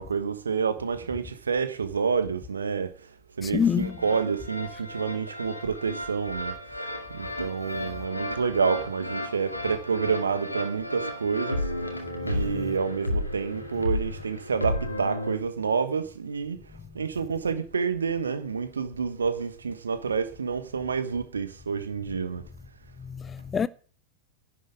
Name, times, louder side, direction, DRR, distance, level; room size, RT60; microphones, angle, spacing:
voice 1, 0.0-3.1 3.4-6.6 7.1-12.0 12.2-16.6 16.9-22.4, right 5 dB, 70° right, 1.3 m, -29 dB
voice 2, 3.4-4.0 12.5-12.7 23.0-23.7, left 7 dB, 20° left, 0.6 m, -27 dB
sound 1, 3.8-15.4, left 1 dB, 85° left, 2.0 m, -33 dB
11.0 x 7.5 x 9.8 m
figure-of-eight pair, 90°, 0 cm